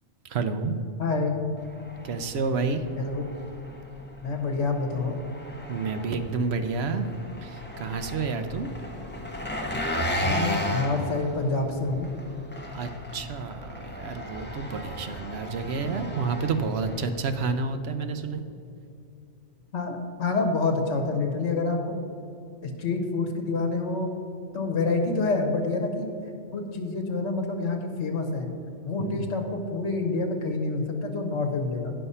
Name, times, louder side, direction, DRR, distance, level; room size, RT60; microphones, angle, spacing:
voice 1, 0.2-0.8 2.0-2.8 5.7-7.1 7.4-8.7 12.7-18.4 29.0-29.2, right 4 dB, 65° right, 9 dB, 0.9 m, -29 dB
voice 2, 1.0-1.4 3.0-3.3 4.2-5.2 10.2-12.1 19.7-22.0 22.6-24.1 24.5-26.1 26.5-28.5 28.8-31.9, left 3 dB, 65° left, 4 dB, 1.3 m, -27 dB
Engine, 1.6-17.4, equal, 10° left, 0.8 m, -35 dB
9.8 x 5.6 x 5.5 m, 2.6 s
omnidirectional pair, 1.2 m